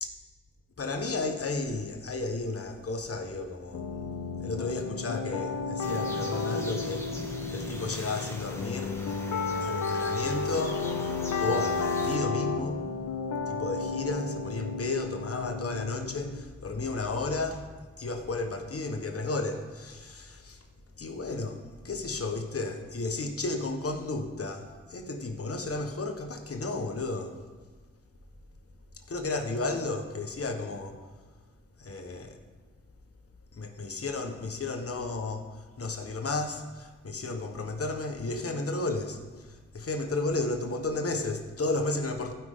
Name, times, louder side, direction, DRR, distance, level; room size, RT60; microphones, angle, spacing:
voice 1, 0.8-3.9 4.4-9.1 9.6-12.8 13.4-20.7 21.0-27.4 29.1-31.0 31.8-32.4 33.5-42.3, left 3 dB, 50° left, 1.3 m, -33 dB
sound 1, 3.7-16.4, left 4 dB, 75° left, 0.8 m, -32 dB
sound 2, 5.8-12.2, left 1 dB, 10° left, 1.7 m, -41 dB
15.5 x 5.5 x 3.8 m
cardioid pair, 50°, 30 cm